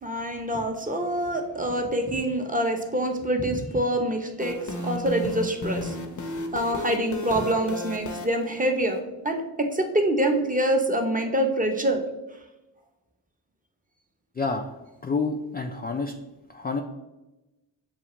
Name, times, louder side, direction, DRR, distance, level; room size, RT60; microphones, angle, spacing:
voice 1, 0.0-6.0 6.5-12.0, right 1 dB, 15° right, 4 dB, 0.7 m, -26 dB
sound 1, 4.4-9.0, left 1 dB, 40° left, 0.7 m, -34 dB
voice 2, 14.3-14.7 15.0-16.1 16.5-16.8, left 4 dB, 20° left, 3 dB, 0.3 m, -28 dB
7.1 x 2.4 x 3.0 m, 1.0 s
supercardioid pair, 45°, 48 cm